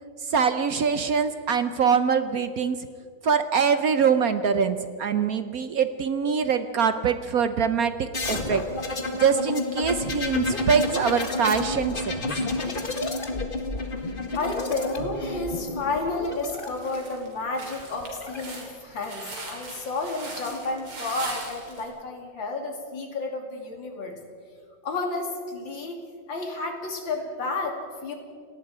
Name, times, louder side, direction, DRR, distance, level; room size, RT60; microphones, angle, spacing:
voice 1, 0.2-2.9 3.2-8.6 9.2-12.3, right 6 dB, 65° right, 10 dB, 0.9 m, -24 dB
sound 1, 8.1-16.7 17.8-18.4, left 2 dB, 25° left, 1.6 m, -30 dB
voice 2, 14.3-24.2 24.8-26.0 26.3-28.1, left 3 dB, 60° left, 2 dB, 3.3 m, -31 dB
sound 2, 15.0-15.5 16.0-16.1 16.5-21.8, right 2 dB, 80° right, 4.6 m, -40 dB
29.5 x 18.5 x 4.9 m, 2.2 s
omnidirectional pair, 2.3 m